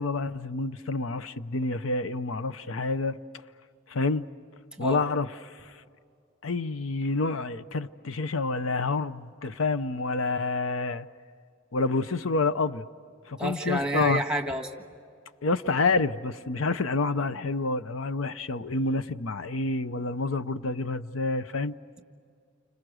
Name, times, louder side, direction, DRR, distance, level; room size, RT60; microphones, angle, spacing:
voice 1, 0.0-3.2 3.9-4.3 4.8-5.7 6.4-11.1 11.7-12.9 13.3-14.2 15.4-21.8, left 3 dB, 85° left, 13 dB, 0.7 m, -28 dB
voice 2, 13.4-14.7, right 1 dB, 5° right, 5 dB, 1.5 m, -29 dB
29.5 x 26.5 x 6.3 m, 2.3 s
head